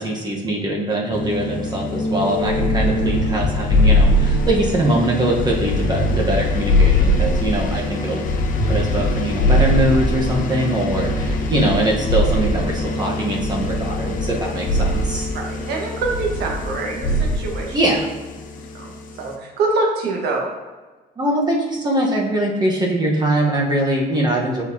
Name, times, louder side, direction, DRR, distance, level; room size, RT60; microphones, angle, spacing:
voice 1, 0.0-8.4 8.7-15.3 17.7-18.1 21.2-24.6, right 1 dB, 25° right, -2 dB, 1.2 m, -22 dB
sound 1, 1.1-19.4, left 2 dB, 55° left, 0.8 m, -28 dB
sound 2, 2.4-4.8 5.3-7.8 8.2-10.4 10.9-12.8 13.4-14.4 14.6-15.1 16.0-16.7 17.0-17.5, left 1 dB, 70° left, 1.2 m, -20 dB
voice 2, 15.3-17.7 18.7-18.9 19.2-20.5, right 3 dB, 75° right, 0 dB, 1.4 m, -24 dB
7.8 x 4.7 x 2.8 m, 1.3 s
cardioid pair, 110°, 17 cm